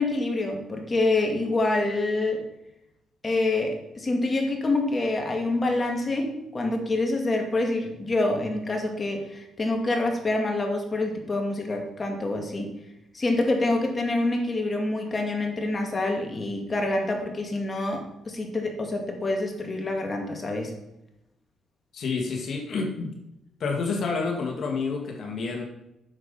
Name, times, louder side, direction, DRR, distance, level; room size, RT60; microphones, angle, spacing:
voice 1, 0.0-2.4 3.2-6.3 6.5-12.7 13.1-20.7, left 2 dB, 30° left, 3 dB, 2.4 m, -26 dB
voice 2, 21.9-23.1 23.6-25.6, left 4 dB, 55° left, 1 dB, 2.2 m, -29 dB
9.7 x 7.2 x 5.6 m, 0.87 s
cardioid pair, 90°, 0 cm